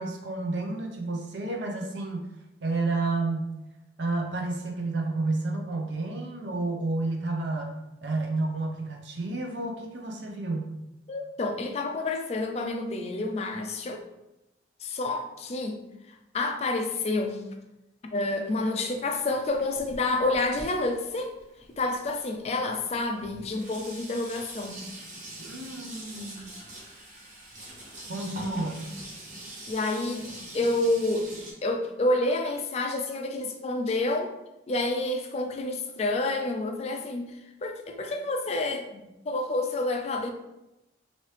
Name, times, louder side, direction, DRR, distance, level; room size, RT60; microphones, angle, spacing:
voice 1, 0.0-2.3 2.6-3.5 4.0-10.8 25.4-26.5 28.1-28.8, right 3 dB, 70° right, 2 dB, 0.6 m, -31 dB
voice 2, 11.1-14.0 14.8-15.8 16.1-17.4 18.1-21.3 21.8-24.8 28.1-28.9 29.7-31.3 31.6-34.3 34.7-40.3, left 2 dB, 35° left, 4 dB, 0.3 m, -29 dB
Sink (filling or washing), 19.0-22.1 22.9-23.0 23.2-31.5, right 1 dB, 40° right, 0.9 m, -44 dB
3.0 x 2.8 x 3.2 m, 0.94 s
head